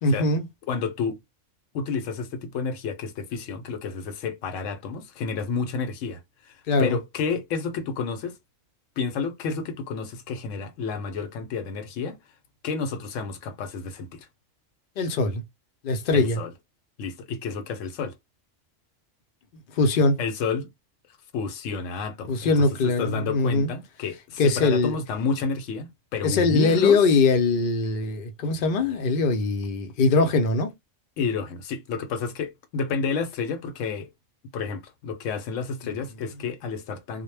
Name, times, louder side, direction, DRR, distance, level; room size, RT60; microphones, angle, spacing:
voice 1, 0.0-0.5 6.7-7.0 15.0-15.4 15.8-16.4 19.8-20.2 22.3-23.7 24.4-25.0 26.2-30.7, left 3 dB, 55° left, 0.6 m, -22 dB
voice 2, 0.7-1.2 1.7-8.3 9.0-12.2 12.6-14.3 16.1-16.5 17.0-18.1 20.2-20.7 21.3-22.5 22.8-27.0 31.2-34.1 34.5-37.2, left 5 dB, 80° left, 0.9 m, -30 dB
2.1 x 2.1 x 3.1 m
omnidirectional pair, 1.3 m